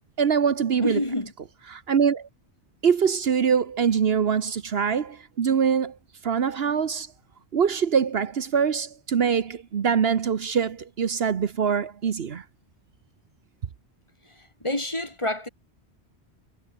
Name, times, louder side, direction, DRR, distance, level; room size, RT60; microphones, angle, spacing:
voice 1, 0.2-1.0 1.7-2.3 2.8-6.0 6.2-7.1 7.5-12.4, right 7 dB, 65° right, 1.2 m, -23 dB
voice 2, 0.8-1.3 14.4-15.5, left 1 dB, 25° left, 2.9 m, -28 dB
omnidirectional pair, 1.1 m